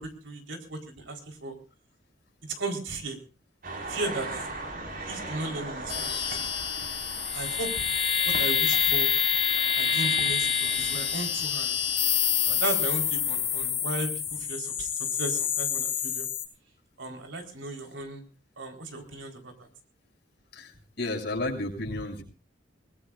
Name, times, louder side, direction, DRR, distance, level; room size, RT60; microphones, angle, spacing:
voice 1, 0.0-1.5 2.6-3.2 3.9-4.3 5.1-6.5 7.3-7.7 8.2-9.1 9.8-11.7 12.5-14.9 15.2-16.3 17.0-18.2 18.6-19.5, right 2 dB, 75° right, 3 dB, 4.3 m, -35 dB
sound 1, 3.6-13.7, right 2 dB, 50° right, 5.0 m, -40 dB
sound 2, 5.9-16.4, left 8 dB, 30° left, 6.7 m, -27 dB
voice 2, 20.5-22.2, left 2 dB, 60° left, 1 dB, 6.8 m, -32 dB
23.5 x 20.5 x 2.6 m, 0.36 s
head